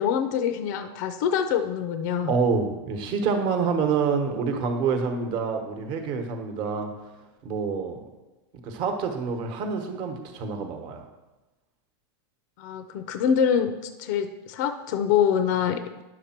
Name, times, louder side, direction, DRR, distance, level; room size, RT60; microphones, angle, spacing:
voice 1, 0.0-2.4 12.6-13.7 14.0-16.0, left 8 dB, 45° left, 9 dB, 0.5 m, -25 dB
voice 2, 2.3-6.9 7.4-8.0 8.6-11.0, right 5 dB, 35° right, 5 dB, 1.2 m, -27 dB
9.9 x 6.7 x 4.4 m, 1.1 s
supercardioid pair, 165°, 14 cm